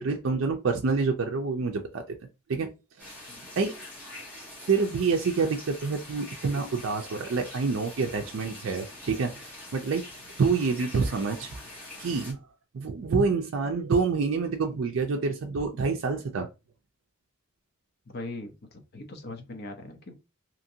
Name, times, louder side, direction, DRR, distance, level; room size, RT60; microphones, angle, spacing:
voice 1, 0.0-2.0 2.5-2.7 3.0-3.1 3.6-3.7 4.7-9.5 9.7-10.0 10.4-11.6 12.0-12.4 12.7-16.5, right 4 dB, 65° right, 0.4 m, -27 dB
sound 1, 3.0-12.3, left 1 dB, 10° left, 1.0 m, -44 dB
voice 2, 18.0-20.1, left 2 dB, 50° left, 0.6 m, -40 dB
2.9 x 2.6 x 2.6 m
head